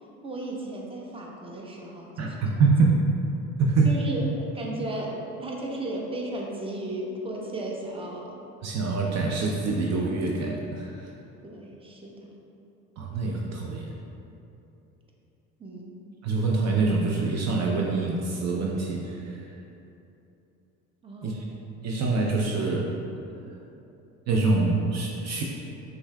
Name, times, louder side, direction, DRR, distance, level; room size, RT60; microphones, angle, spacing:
voice 1, 0.2-2.4 3.8-8.4 11.4-12.3 15.6-16.0 21.0-21.4, right 1 dB, 15° right, -2 dB, 0.7 m, -35 dB
voice 2, 2.2-3.0 3.6-3.9 8.6-11.1 13.0-13.9 16.2-19.3 21.2-21.4 21.8-22.9 24.3-25.4, right 3 dB, 50° right, -1 dB, 0.5 m, -25 dB
5.4 x 3.8 x 2.2 m, 2.8 s
supercardioid pair, 75°, 35 cm